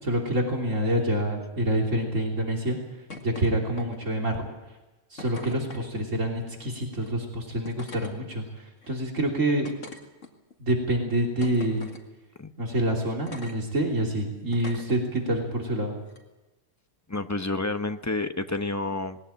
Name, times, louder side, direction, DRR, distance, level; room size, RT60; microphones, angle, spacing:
voice 1, 0.0-2.8 3.2-4.5 5.1-9.7 10.6-11.9 12.6-16.0, right 1 dB, 80° right, 0 dB, 3.5 m, -27 dB
sound 1, 3.1-3.5 3.8-4.2 5.2-5.9 6.9-7.1 7.6-8.1 8.8-8.9 9.6-10.5 11.4-12.0 13.3-13.6 14.5-15.0 16.1-16.2, left 3 dB, 75° left, 2.5 m, -42 dB
voice 2, 17.1-19.2, left 2 dB, 15° left, 8 dB, 0.8 m, -29 dB
20.5 x 17.0 x 8.9 m, 1.1 s
omnidirectional pair, 1.3 m